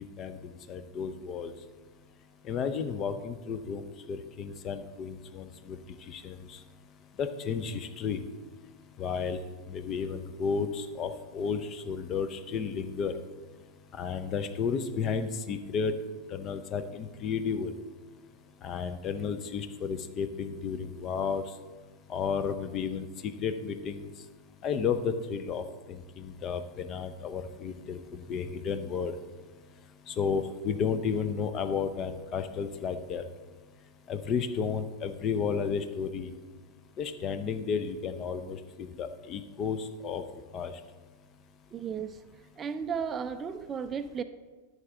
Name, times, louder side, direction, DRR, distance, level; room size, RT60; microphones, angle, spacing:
voice 1, 0.0-1.5 2.4-6.6 7.2-8.2 9.0-9.4 9.7-13.2 13.9-16.0 16.3-17.8 18.6-21.6 22.1-24.2 24.6-29.2 30.1-33.3 34.1-36.3 37.0-40.2 40.5-40.8, left 6 dB, 30° left, 10 dB, 0.6 m, -33 dB
voice 2, 41.7-42.2 42.6-44.2, right 7 dB, 25° right, 11 dB, 0.4 m, -34 dB
11.0 x 6.8 x 3.6 m, 1.3 s
figure-of-eight pair, 90°, 0 cm